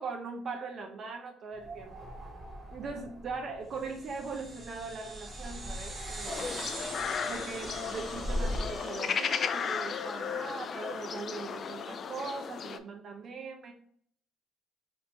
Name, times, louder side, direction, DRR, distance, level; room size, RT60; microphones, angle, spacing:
voice 1, 0.0-2.1 2.7-6.5 7.3-13.7, right 4 dB, 50° right, 2 dB, 0.6 m, -40 dB
sound 1, 1.5-8.8, equal, 10° right, 1.5 m, -41 dB
sound 2, 3.8-10.6, right 2 dB, 25° right, 1.2 m, -45 dB
sound 3, 6.3-12.8, left 6 dB, 45° left, 0.3 m, -35 dB
3.0 x 2.5 x 4.4 m, 0.62 s
cardioid pair, 95°, 0 cm